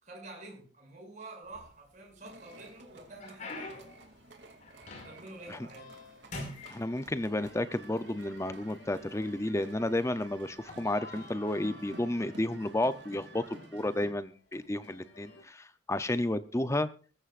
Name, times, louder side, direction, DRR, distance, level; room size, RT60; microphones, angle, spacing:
voice 1, 0.0-3.8 4.9-5.9, right 2 dB, 45° right, -1 dB, 6.8 m, -48 dB
sound 1, 1.4-2.2 2.7-5.4 5.8-6.1 6.3-7.5 8.4-8.5 9.2-9.4 10.5-10.7, left 2 dB, 45° left, 5.6 m, -44 dB
sound 2, 2.2-14.1, right 2 dB, 80° right, 2.7 m, -53 dB
sound 3, 5.3-15.4, left 3 dB, 80° left, 6.0 m, -55 dB
voice 2, 6.7-16.9, left 1 dB, 15° left, 12 dB, 0.6 m, -32 dB
21.0 x 14.5 x 2.5 m, 0.38 s
head